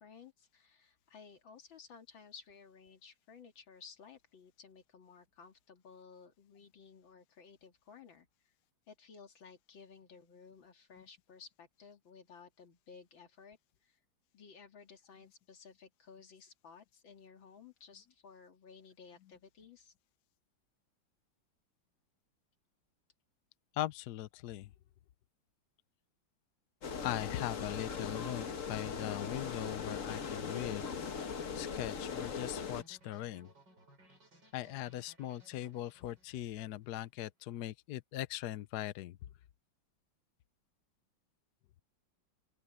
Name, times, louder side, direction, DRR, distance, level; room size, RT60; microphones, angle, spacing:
voice 1, 0.0-8.3 8.9-14.0 14.3-19.9, left 6 dB, 85° left, 3.0 m, -56 dB
voice 2, 23.7-24.7 27.0-33.5 34.5-39.2, left 13 dB, 70° left, 1.1 m, -40 dB
sound 1, 26.8-32.8, left 6 dB, 45° left, 1.5 m, -40 dB
sound 2, 27.9-36.9, right 1 dB, 65° right, 8.8 m, -63 dB
open air
omnidirectional pair, 2.1 m